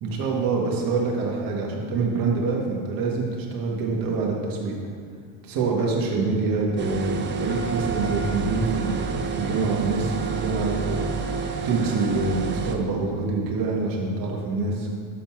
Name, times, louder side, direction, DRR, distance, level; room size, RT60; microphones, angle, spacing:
voice 1, 0.0-4.7 5.4-11.1 11.6-14.9, right 3 dB, 50° right, -1 dB, 1.5 m, -25 dB
sound 1, 6.8-12.8, right 5 dB, 25° right, 0.5 m, -29 dB
Wind instrument woodwind instrument, 7.5-12.7, right 5 dB, 15° left, 0.9 m, -40 dB
7.3 x 4.2 x 4.4 m, 2.1 s
supercardioid pair, 115°, 44 cm